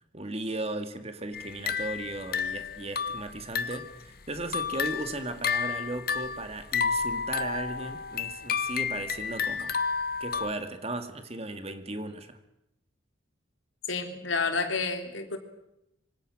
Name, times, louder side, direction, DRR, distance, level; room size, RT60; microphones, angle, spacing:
voice 1, 0.1-9.8 10.2-12.4, right 2 dB, 30° right, 2.2 m, -36 dB
sound 1, 1.3-4.0 4.3-10.5, left 6 dB, 50° left, 1.1 m, -31 dB
voice 2, 13.9-15.4, left 4 dB, 70° left, 3.6 m, -30 dB
26.0 x 25.5 x 6.4 m
head